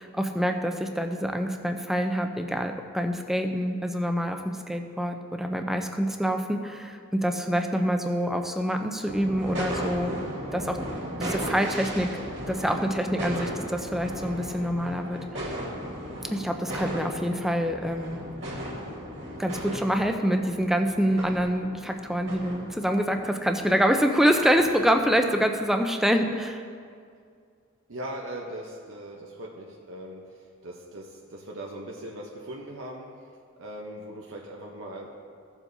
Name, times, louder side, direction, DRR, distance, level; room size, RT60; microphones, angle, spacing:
voice 1, 0.0-10.1 10.5-12.2 12.5-15.4 16.3-18.2 19.4-26.6, equal, ahead, 5 dB, 0.4 m, -26 dB
sound 1, 9.1-25.7, equal, 60° right, 2.3 m, -36 dB
voice 2, 27.9-33.1 33.6-35.1, right 1 dB, 90° right, -1 dB, 0.8 m, -40 dB
16.0 x 7.2 x 2.7 m, 2.2 s
head